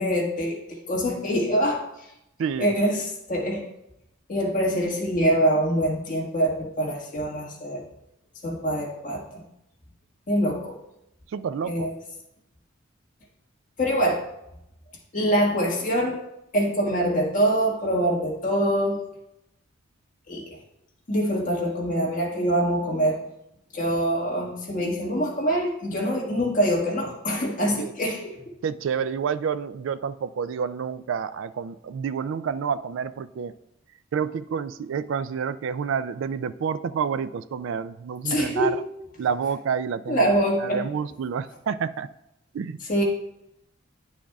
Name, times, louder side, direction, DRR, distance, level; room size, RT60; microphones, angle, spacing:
voice 1, 0.0-1.8 2.6-3.7 4.3-7.8 8.4-9.4 10.3-10.8 11.7-11.9 13.8-14.2 15.1-16.2 16.5-19.0 20.3-20.4 21.1-23.2 23.7-28.5 38.2-38.8 40.1-40.9 42.9-43.0, equal, 40° left, -2 dB, 1.6 m, -24 dB
voice 2, 2.4-2.8 11.3-11.9 27.8-27.9 28.6-33.5 34.1-38.8 39.2-40.3 40.6-42.1 42.5-42.8, right 6 dB, 65° right, 15 dB, 0.3 m, -29 dB
9.8 x 6.3 x 2.3 m, 0.85 s
head